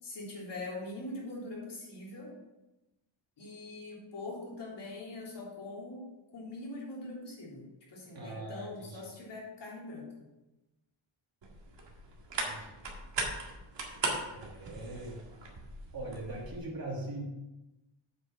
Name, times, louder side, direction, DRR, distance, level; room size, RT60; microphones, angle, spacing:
voice 1, 0.0-2.4 3.4-10.3, left 2 dB, 60° left, -5 dB, 3.5 m, -43 dB
voice 2, 8.1-8.9 12.4-12.8 14.3-15.2 15.9-17.2, right 2 dB, 50° right, -3 dB, 2.8 m, -41 dB
sound 1, 11.4-16.6, right 3 dB, 65° right, 1.9 m, -39 dB
7.9 x 6.0 x 5.8 m, 1.0 s
wide cardioid pair, 160°, 48 cm